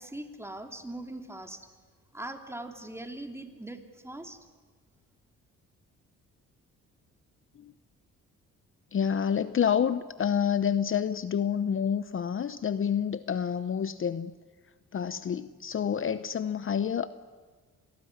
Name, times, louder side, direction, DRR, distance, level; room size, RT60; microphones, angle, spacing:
voice 1, 0.0-1.7 2.1-4.4, right 1 dB, 10° right, 5 dB, 3.0 m, -41 dB
voice 2, 8.9-14.3 14.9-17.1, left 8 dB, 45° left, 13 dB, 0.9 m, -28 dB
27.0 x 18.5 x 9.7 m, 1.4 s
cardioid pair, 90°, 30 cm